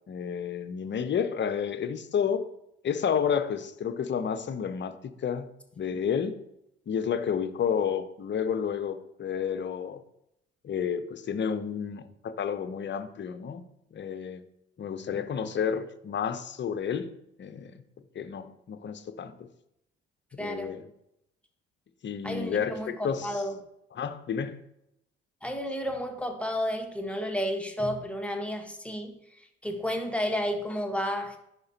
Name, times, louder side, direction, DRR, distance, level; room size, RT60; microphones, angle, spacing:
voice 1, 0.1-2.4 2.8-5.5 5.8-6.4 6.9-10.0 10.6-13.6 13.9-14.4 14.8-17.1 17.4-17.8 18.2-19.3 20.3-20.8 22.0-23.3 23.9-24.6, left 7 dB, 35° left, 11 dB, 0.7 m, -30 dB
voice 2, 20.4-20.7 22.2-23.6 25.4-31.4, equal, 5° left, 4 dB, 1.2 m, -32 dB
10.5 x 3.7 x 2.8 m, 0.80 s
hypercardioid pair, 45°, 31 cm